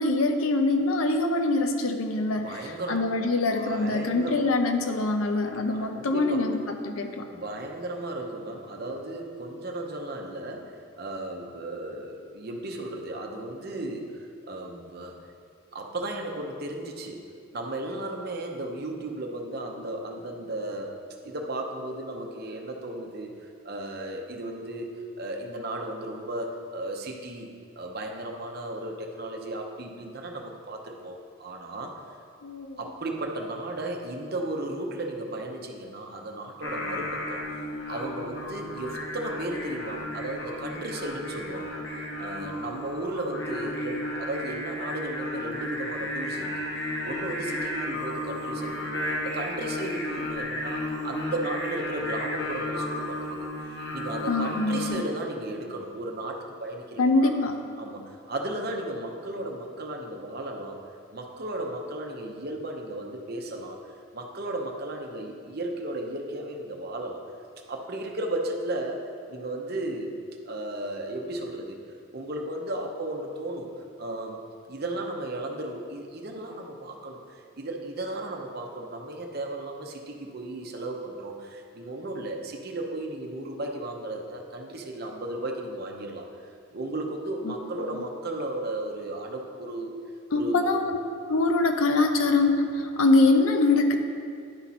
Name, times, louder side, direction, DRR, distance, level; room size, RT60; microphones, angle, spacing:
voice 1, 0.0-7.3 32.4-32.8 54.3-55.0 57.0-57.6 87.4-87.6 87.9-88.0 90.3-91.0 91.3-94.0, left 2 dB, 75° left, 5 dB, 0.6 m, -24 dB
voice 2, 2.4-3.0 3.4-4.4 5.7-6.5 7.3-15.2 15.7-17.2 17.5-20.9 21.2-23.3 23.6-27.5 27.8-32.0 32.8-41.8 42.2-46.5 47.0-48.9 49.2-57.3 57.8-60.8 61.1-63.8 64.1-67.2 67.7-69.0 69.3-70.2 70.4-71.8 72.1-73.7 74.0-74.4 74.7-86.3 86.7-89.9 90.3-90.7, right 1 dB, 45° right, 1 dB, 0.7 m, -35 dB
Singing, 36.6-54.9, left 1 dB, 55° left, 1.2 m, -33 dB
10.5 x 4.3 x 4.1 m, 2.3 s
head